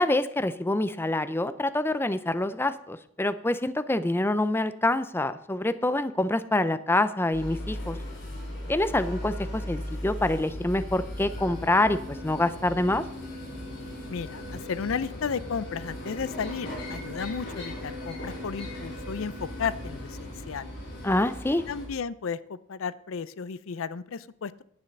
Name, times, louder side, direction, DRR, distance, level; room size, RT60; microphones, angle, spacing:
voice 1, 0.0-8.0 8.7-13.0 21.0-21.6, left 1 dB, 10° left, 12 dB, 0.5 m, -26 dB
sound 1, 7.3-21.9, left 1 dB, 55° left, 4.2 m, -37 dB
voice 2, 14.1-20.7 21.7-24.6, left 6 dB, 85° left, 17 dB, 0.5 m, -34 dB
10.5 x 9.1 x 5.4 m, 0.68 s
head